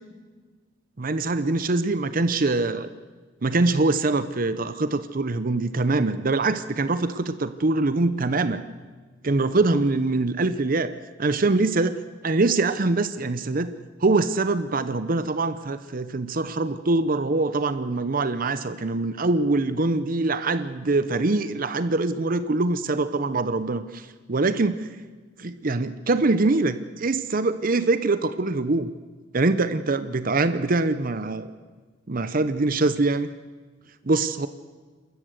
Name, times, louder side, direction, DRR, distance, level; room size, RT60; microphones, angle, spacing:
voice 1, 1.0-2.9 3.4-8.6 9.2-10.9 11.2-13.7 14.0-24.0 24.3-24.9 25.4-28.9 29.3-31.5 32.1-33.3 34.1-34.5, right 3 dB, 50° right, 12 dB, 0.8 m, -23 dB
29.0 x 13.5 x 8.0 m, 1.4 s
head